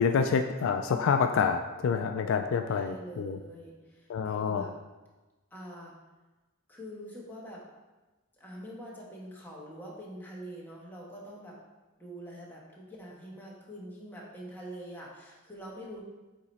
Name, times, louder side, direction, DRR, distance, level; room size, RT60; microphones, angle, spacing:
voice 1, 0.0-3.4 4.1-4.6, left 6 dB, 65° left, 7 dB, 0.3 m, -27 dB
voice 2, 2.7-4.7 5.5-6.0 6.7-7.6 8.4-11.6 12.0-16.0, equal, 10° left, -4 dB, 1.3 m, -44 dB
8.6 x 3.0 x 4.1 m, 1.2 s
head